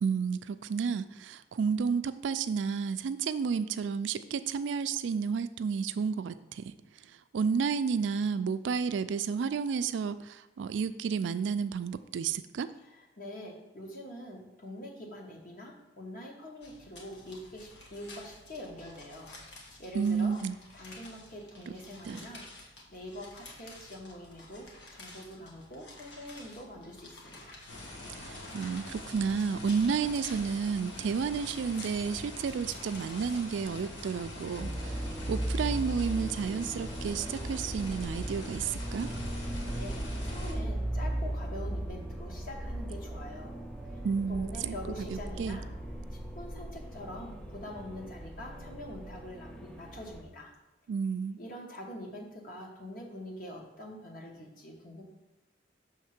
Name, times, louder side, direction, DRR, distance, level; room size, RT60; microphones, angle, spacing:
voice 1, 0.0-6.7 7.3-12.7 19.9-20.6 22.0-22.2 28.2-39.1 44.0-44.7 45.1-45.6 50.9-51.4, right 6 dB, 75° right, 12 dB, 0.3 m, -31 dB
voice 2, 12.9-19.3 19.8-20.4 20.7-22.5 22.9-27.5 39.4-43.6 44.3-45.7 46.1-50.5 51.4-55.0, left 1 dB, 45° left, 0 dB, 1.3 m, -44 dB
sound 1, 16.6-34.6, left 2 dB, 65° left, 1.3 m, -51 dB
sound 2, 27.7-40.5, left 1 dB, 85° left, 1.4 m, -44 dB
sound 3, 34.6-50.2, right 1 dB, 5° left, 0.5 m, -37 dB
6.4 x 3.5 x 5.9 m, 1.0 s
head